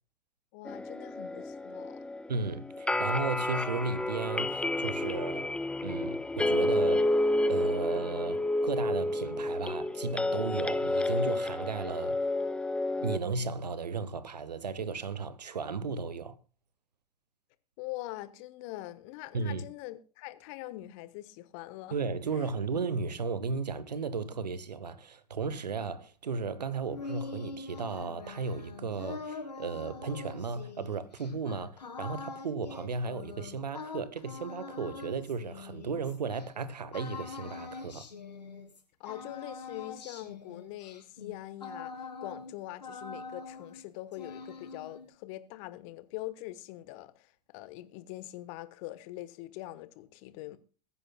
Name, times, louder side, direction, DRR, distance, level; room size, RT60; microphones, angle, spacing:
voice 1, 0.5-2.0 17.8-22.0 39.0-50.6, left 16 dB, 50° left, 1.1 m, -43 dB
sound 1, 0.7-13.2, left 1 dB, 5° left, 0.5 m, -30 dB
voice 2, 2.3-5.5 5.8-7.1 7.5-12.2 13.0-16.4 19.3-19.7 21.9-38.0, right 4 dB, 80° right, 1.0 m, -35 dB
sound 2, 26.6-36.5 36.9-38.8 39.0-42.5 42.8-43.8 44.1-45.1, left 4 dB, 80° left, 2.2 m, -43 dB
21.5 x 9.7 x 2.2 m
figure-of-eight pair, 85°, 21 cm